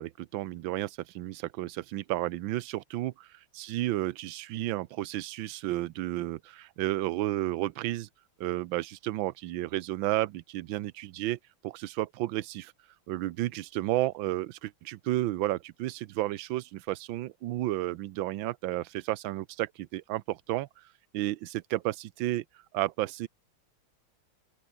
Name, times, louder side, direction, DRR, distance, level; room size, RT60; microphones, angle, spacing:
voice 1, 0.0-3.3 3.5-8.1 8.4-11.4 11.6-12.7 13.1-20.7 21.1-22.4 22.7-23.3, right 16 dB, 70° right, 1.4 m, -32 dB
open air
omnidirectional pair, 2.3 m